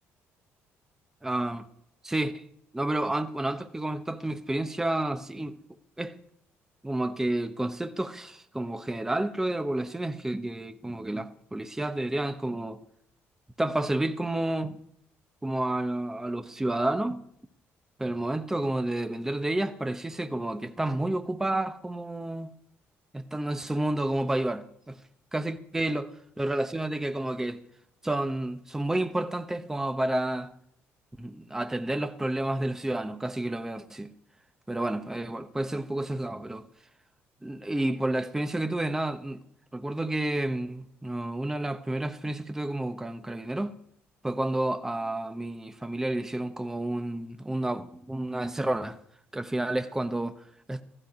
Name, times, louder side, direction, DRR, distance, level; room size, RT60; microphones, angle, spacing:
voice 1, 1.2-1.7 2.0-2.4 2.7-5.5 6.0-6.2 6.8-12.8 13.6-14.8 15.4-17.2 18.0-22.5 23.1-25.0 25.3-26.1 26.4-27.6 28.0-30.5 31.2-34.1 34.7-36.7 37.4-39.4 39.7-43.7 44.2-49.0 49.3-50.8, right 1 dB, 10° right, 0.9 m, -30 dB
15.5 x 13.0 x 4.9 m
cardioid pair, 115°, 5 cm